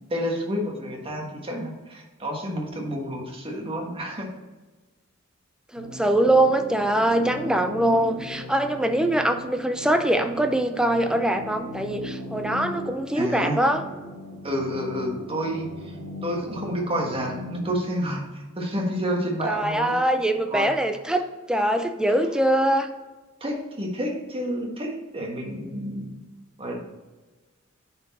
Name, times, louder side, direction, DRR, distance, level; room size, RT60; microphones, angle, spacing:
voice 1, 0.1-4.3 13.1-13.6 14.4-16.0 16.2-19.9 20.5-20.7 23.4-26.2 26.6-26.8, equal, 25° right, 0 dB, 1.5 m, -29 dB
voice 2, 5.7-13.8 19.4-21.2 21.5-22.9, right 1 dB, 5° right, 6 dB, 0.6 m, -23 dB
sound 1, 5.8-17.7, left 1 dB, 70° right, 1.6 m, -39 dB
9.8 x 4.5 x 4.2 m, 1.2 s
head